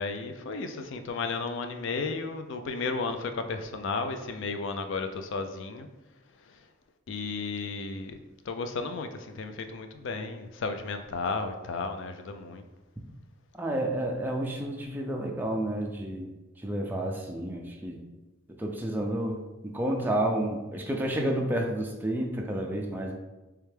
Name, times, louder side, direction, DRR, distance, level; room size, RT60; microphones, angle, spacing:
voice 1, 0.0-5.9 7.1-8.2 8.5-12.6, left 4 dB, 60° left, 7 dB, 0.4 m, -33 dB
voice 2, 13.6-16.3 16.6-18.0 18.6-23.1, right 1 dB, 10° right, 1 dB, 0.4 m, -30 dB
3.4 x 3.3 x 3.3 m, 1.1 s
head